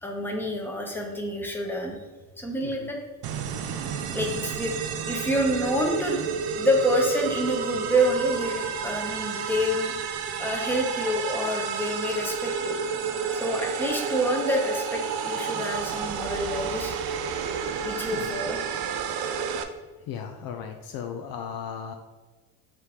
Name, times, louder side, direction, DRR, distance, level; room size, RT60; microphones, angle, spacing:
voice 1, 0.0-2.0 2.4-3.0 4.1-6.2 6.6-10.1 10.4-12.8 13.3-16.9 17.8-18.6, equal, 5° left, 0 dB, 0.9 m, -27 dB
sound 1, 3.2-19.6, right 6 dB, 60° right, 0.5 m, -31 dB
voice 2, 19.1-19.5 20.1-21.9, left 7 dB, 55° left, 5 dB, 0.5 m, -37 dB
3.4 x 2.9 x 4.6 m, 1.3 s
supercardioid pair, 85°, 42 cm